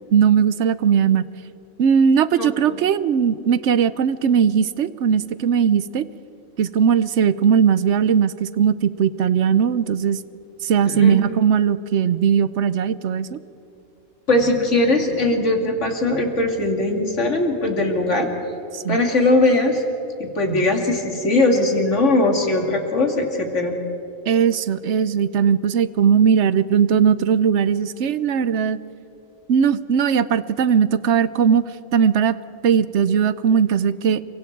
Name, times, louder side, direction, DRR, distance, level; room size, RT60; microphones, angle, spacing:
voice 1, 0.1-1.2 1.8-6.1 6.6-10.2 10.6-13.4 18.7-19.0 24.3-28.8 29.5-31.6 31.9-32.4 32.6-34.2, right 7 dB, 65° right, 15 dB, 1.0 m, -18 dB
voice 2, 2.4-2.7 10.9-11.2 14.3-18.3 18.9-19.8 20.2-23.7, left 2 dB, 65° left, 2 dB, 2.9 m, -20 dB
29.5 x 24.0 x 4.6 m, 3.0 s
omnidirectional pair, 1.4 m